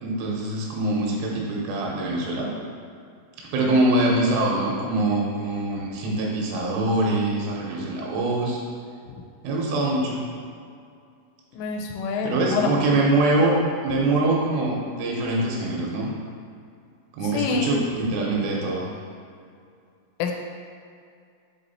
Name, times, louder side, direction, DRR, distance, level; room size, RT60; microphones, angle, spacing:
voice 1, 0.0-2.5 3.5-8.6 9.4-10.2 12.2-16.1 17.1-18.9, right 2 dB, 85° right, -3 dB, 3.5 m, -24 dB
voice 2, 11.5-13.0 17.2-17.8 20.2-20.3, left 5 dB, 85° left, 3 dB, 3.1 m, -27 dB
7.3 x 3.8 x 4.1 m, 2.3 s
omnidirectional pair, 5.6 m